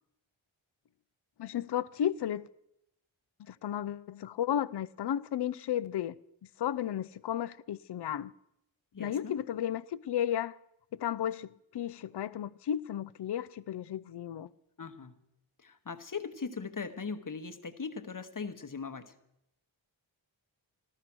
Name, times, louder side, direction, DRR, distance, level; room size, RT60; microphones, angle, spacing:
voice 1, 1.4-2.5 3.4-6.2 6.6-8.3 9.0-10.6 10.9-14.5, left 10 dB, 55° left, 0.5 m, -33 dB
voice 2, 8.9-9.3 14.8-15.1 15.6-19.1, left 5 dB, 40° left, 1.1 m, -39 dB
14.0 x 13.5 x 6.0 m
wide cardioid pair, 105°, 48 cm